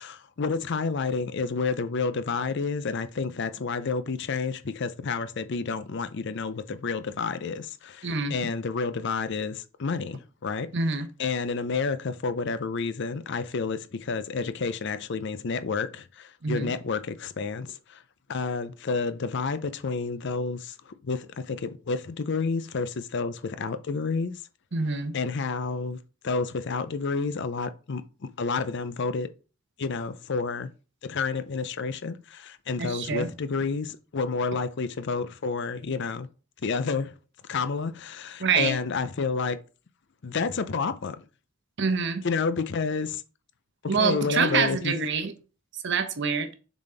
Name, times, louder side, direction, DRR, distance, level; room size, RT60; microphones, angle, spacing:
voice 1, 0.0-10.7 11.2-18.0 18.3-24.4 25.1-29.3 29.8-30.7 31.0-36.3 36.6-37.1 37.5-39.6 40.2-41.2 42.2-43.2 43.8-44.9, left 4 dB, 55° left, 0.5 m, -30 dB
voice 2, 8.0-8.3 10.7-11.1 16.4-16.7 24.7-25.1 32.8-33.3 38.4-38.8 41.8-42.2 43.9-45.3 45.8-46.5, right 5 dB, 55° right, 0.8 m, -26 dB
7.1 x 4.1 x 3.3 m
head